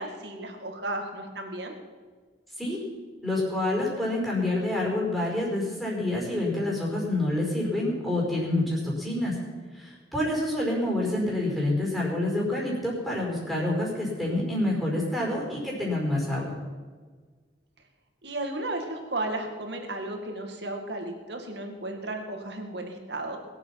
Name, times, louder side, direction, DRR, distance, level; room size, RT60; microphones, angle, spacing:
voice 1, 0.0-1.7 18.2-23.4, right 2 dB, 70° right, 4 dB, 2.3 m, -34 dB
voice 2, 3.2-9.3 9.7-16.6, left 1 dB, ahead, -4 dB, 5.1 m, -27 dB
22.0 x 8.2 x 5.9 m, 1.5 s
head